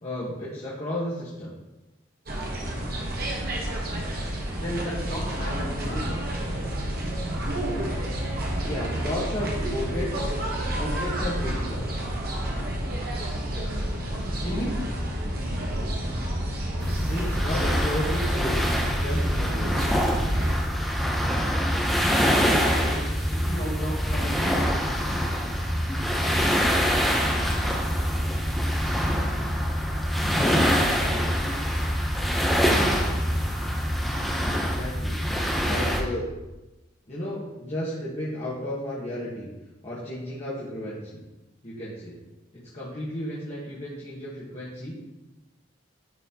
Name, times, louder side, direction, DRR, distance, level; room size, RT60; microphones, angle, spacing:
voice 1, 0.0-1.5 8.6-10.2 10.7-11.9 16.9-19.8 34.5-35.2 35.6-36.3 37.1-39.5 39.8-41.2 41.6-42.1 42.7-44.9, left 1 dB, 30° left, -8 dB, 1.2 m, -33 dB
sound 1, 2.3-20.5, right 1 dB, 50° right, 1.1 m, -30 dB
voice 2, 4.6-6.2 14.4-14.8 22.7-25.0, equal, 50° left, -4 dB, 1.8 m, -34 dB
sound 2, 16.8-36.0, equal, ahead, 0.7 m, -25 dB
10.5 x 4.1 x 2.9 m, 1.0 s
head